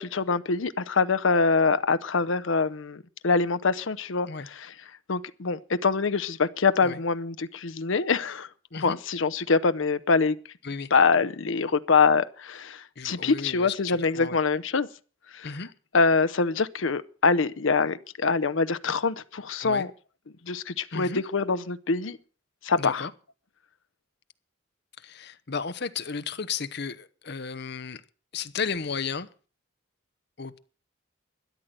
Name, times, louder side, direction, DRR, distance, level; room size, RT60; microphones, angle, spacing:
voice 1, 0.0-4.7 5.1-8.5 8.7-10.4 10.9-14.9 15.3-15.5 15.9-19.9 20.5-22.2 22.6-23.1, left 4 dB, 70° left, 0.7 m, -24 dB
voice 2, 13.0-14.4 15.4-15.7 19.6-19.9 20.9-21.2 22.8-23.1 25.0-28.0 28.3-29.3 30.4-30.6, left 5 dB, 55° left, 1.0 m, -34 dB
13.0 x 10.5 x 7.8 m
head